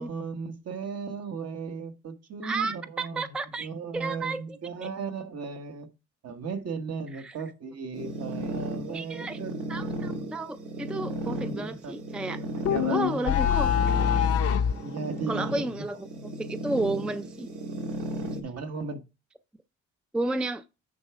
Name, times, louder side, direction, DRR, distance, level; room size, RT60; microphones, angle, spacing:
voice 1, 0.0-5.9 6.2-9.6 11.2-12.0 12.5-13.7 14.8-15.9 18.4-19.0, right 4 dB, 55° right, 1.3 m, -36 dB
voice 2, 2.4-4.9 7.1-7.3 8.9-9.4 9.7-12.4 12.9-13.7 15.3-16.1 16.4-17.5 20.1-20.6, right 2 dB, 5° right, 0.4 m, -32 dB
sound 1, 7.9-18.4, right 1 dB, 85° right, 1.9 m, -35 dB
sound 2, 12.7-14.8, left 8 dB, 55° left, 0.6 m, -24 dB
9.4 x 3.3 x 4.7 m
cardioid pair, 90°, 30 cm